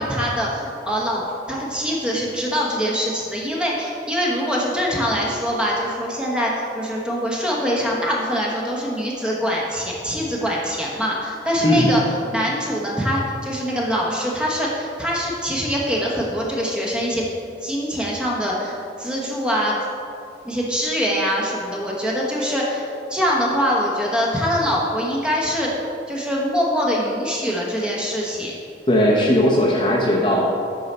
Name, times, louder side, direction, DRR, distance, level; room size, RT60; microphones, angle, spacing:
voice 1, 0.0-12.0 12.3-17.3 17.6-19.8 20.4-25.7 26.1-28.5, equal, 5° right, -4 dB, 1.0 m, -23 dB
voice 2, 11.6-11.9 28.9-30.5, equal, 30° left, -3 dB, 0.7 m, -17 dB
8.5 x 5.6 x 4.2 m, 2.5 s
head